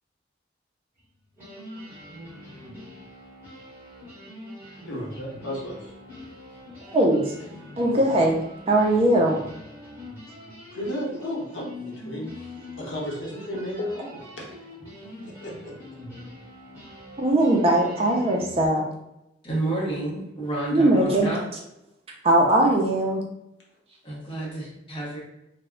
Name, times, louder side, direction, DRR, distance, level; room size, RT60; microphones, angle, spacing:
sound 1, 1.0-1.1 1.3-18.7, left 1 dB, 10° right, 1.1 m, -43 dB
voice 1, 4.8-5.9 10.7-12.3 12.8-14.5 15.2-16.0, equal, 70° left, -4 dB, 0.8 m, -34 dB
voice 2, 6.8-7.3 7.8-9.4 17.2-18.9 20.7-21.3 22.2-23.2, right 1 dB, 30° right, -1 dB, 0.4 m, -20 dB
voice 3, 19.4-21.4 24.0-25.2, right 2 dB, 25° left, -5 dB, 0.8 m, -30 dB
2.2 x 2.0 x 3.6 m, 0.86 s
head